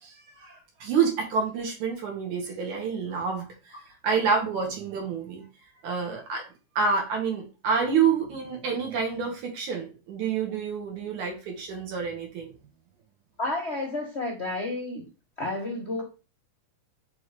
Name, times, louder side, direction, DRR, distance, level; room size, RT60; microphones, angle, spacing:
voice 1, 0.0-3.8 4.0-5.4 5.8-6.4 6.8-12.5, right 6 dB, 80° right, 0 dB, 3.1 m, -28 dB
voice 2, 13.4-15.0 15.4-16.0, left 2 dB, 80° left, 0 dB, 0.6 m, -31 dB
6.1 x 3.4 x 4.7 m, 0.32 s
omnidirectional pair, 3.3 m